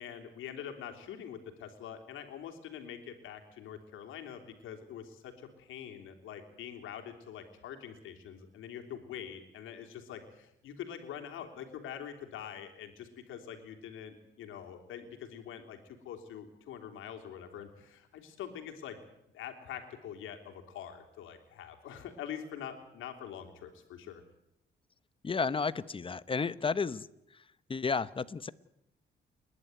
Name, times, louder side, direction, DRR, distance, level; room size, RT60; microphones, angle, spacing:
voice 1, 0.0-19.0 19.3-24.2, left 9 dB, 85° left, 4 dB, 3.2 m, -45 dB
voice 2, 25.2-27.1 27.3-27.4 27.7-28.5, left 5 dB, 25° left, 16 dB, 0.9 m, -32 dB
29.5 x 11.5 x 9.6 m, 0.85 s
cardioid pair, 90°, 20 cm